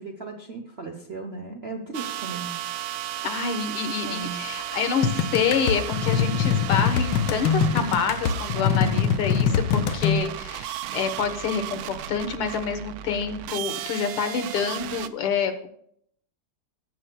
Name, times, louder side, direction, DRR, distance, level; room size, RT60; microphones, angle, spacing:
voice 1, 0.0-2.6 4.0-4.4 8.6-8.8, right 4 dB, 50° right, 2 dB, 0.7 m, -36 dB
sound 1, 1.9-15.1, right 12 dB, 80° right, 1.4 m, -35 dB
voice 2, 3.2-15.7, left 6 dB, 85° left, 7 dB, 2.0 m, -27 dB
sound 2, 5.0-10.2, left 7 dB, 70° left, 1.2 m, -23 dB
18.5 x 7.8 x 2.3 m, 0.68 s
omnidirectional pair, 2.4 m